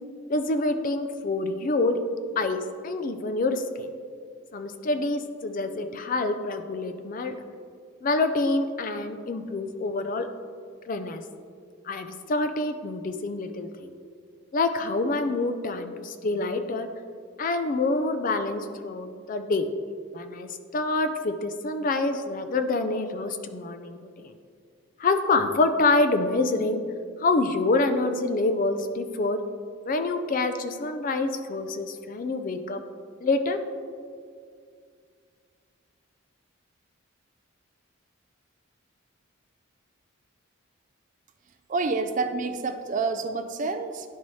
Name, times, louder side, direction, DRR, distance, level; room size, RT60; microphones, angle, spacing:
voice 1, 0.3-2.0 2.4-3.9 4.5-7.3 8.0-10.3 10.9-11.2 11.8-13.9 14.5-16.9 17.4-19.7 20.1-24.3 25.0-26.8 27.2-29.4 29.9-32.8 33.2-33.6, left 3 dB, 40° left, 8 dB, 0.4 m, -26 dB
voice 2, 41.7-44.1, right 4 dB, 35° right, 8 dB, 0.3 m, -28 dB
11.0 x 4.1 x 3.1 m, 2.2 s
head